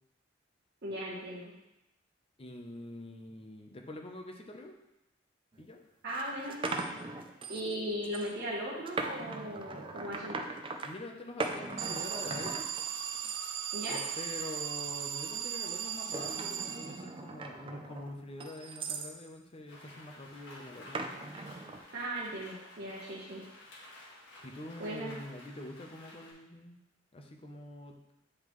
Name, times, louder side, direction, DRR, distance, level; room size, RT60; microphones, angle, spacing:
voice 1, 0.8-1.5 6.0-6.6 7.5-10.5 13.7-14.0 21.9-23.4 24.8-25.2, right 1 dB, 60° right, -6 dB, 1.1 m, -37 dB
voice 2, 2.4-4.8 5.6-5.8 10.8-12.7 13.9-21.2 24.4-26.8 27.1-28.1, left 1 dB, 30° left, 3 dB, 0.7 m, -45 dB
sound 1, 5.5-5.6 6.1-7.7 8.0-8.3 8.9-10.9 11.4-13.4 13.7-14.1 14.6-14.9 15.7-19.1 20.9-21.8, right 3 dB, 30° right, 0.4 m, -40 dB
Alarm, 11.8-17.3, right 8 dB, 90° right, 0.4 m, -37 dB
Rain, 19.7-26.3, left 1 dB, 80° left, 1.6 m, -53 dB
8.7 x 3.7 x 3.1 m, 0.92 s
head